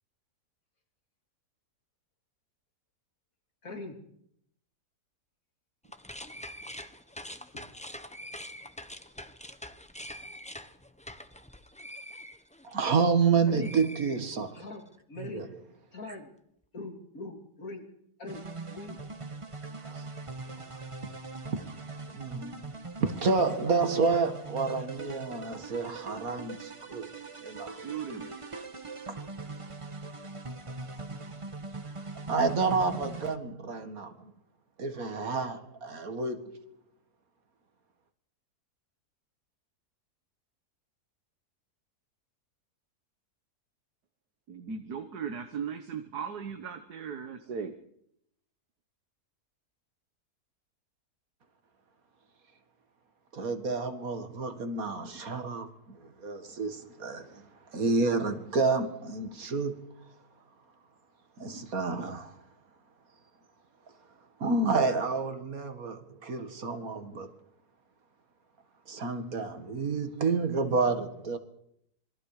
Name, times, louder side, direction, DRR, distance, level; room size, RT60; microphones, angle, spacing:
voice 1, 3.6-4.0 7.5-7.7 13.5-13.7 14.5-15.5 15.9-16.3 16.7-17.8 18.2-18.4 18.7-19.0, left 3 dB, 60° left, 3.4 m, -41 dB
sound 1, 5.8-13.3 13.6-14.7, left 1 dB, 5° left, 0.8 m, -45 dB
voice 2, 12.6-14.6 15.2-15.6 19.9-20.1 22.1-22.7 23.0-27.1 27.4-27.8 32.3-34.3 34.8-36.6 53.3-60.1 61.4-62.3 64.4-67.3 68.9-71.4, right 4 dB, 65° right, 2.3 m, -29 dB
sound 2, 18.3-33.4, right 3 dB, 20° right, 1.1 m, -41 dB
voice 3, 27.6-28.3 44.5-47.8, right 7 dB, 90° right, 1.9 m, -37 dB
26.5 x 22.0 x 5.0 m
omnidirectional pair, 1.6 m